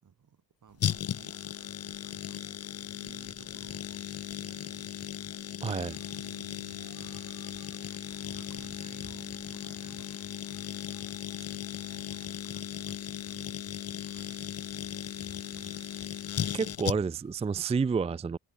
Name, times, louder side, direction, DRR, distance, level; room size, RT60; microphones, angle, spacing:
voice 1, 0.0-7.7 8.2-11.0 11.2-16.3, right 7 dB, 65° right, 4.3 m, -59 dB
sound 1, 0.8-17.3 17.6-17.7, left 9 dB, 50° left, 0.6 m, -37 dB
voice 2, 5.6-6.0 16.5-18.4, right 5 dB, 20° right, 0.4 m, -29 dB
sound 2, 5.6-12.3, right 10 dB, 80° right, 2.5 m, -58 dB
sound 3, 6.8-16.3, right 4 dB, 40° right, 3.0 m, -63 dB
cardioid pair, 65°, 33 cm